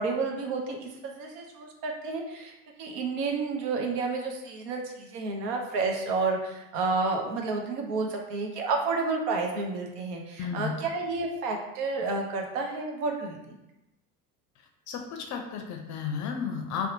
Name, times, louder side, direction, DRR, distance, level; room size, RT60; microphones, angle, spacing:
voice 1, 0.0-2.5 2.8-13.6, right 3 dB, 80° right, 2 dB, 0.7 m, -30 dB
voice 2, 10.4-10.8 14.9-16.9, left 6 dB, 40° left, 3 dB, 0.4 m, -33 dB
2.7 x 2.1 x 2.6 m, 0.91 s
hypercardioid pair, 80°, 47 cm